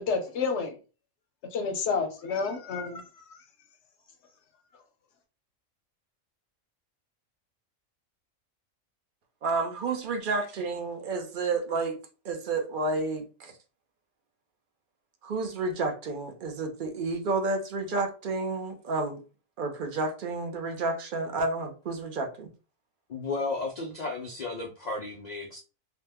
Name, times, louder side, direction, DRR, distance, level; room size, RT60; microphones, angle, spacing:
voice 1, 0.1-0.8 1.5-3.0, left 5 dB, 65° left, 0.8 m, -29 dB
voice 2, 9.4-12.0 12.2-13.5 15.2-19.2 19.6-22.5, right 3 dB, 50° right, 0.6 m, -30 dB
voice 3, 23.1-25.6, left 3 dB, 85° left, 0.3 m, -33 dB
2.9 x 2.1 x 3.3 m
omnidirectional pair, 1.4 m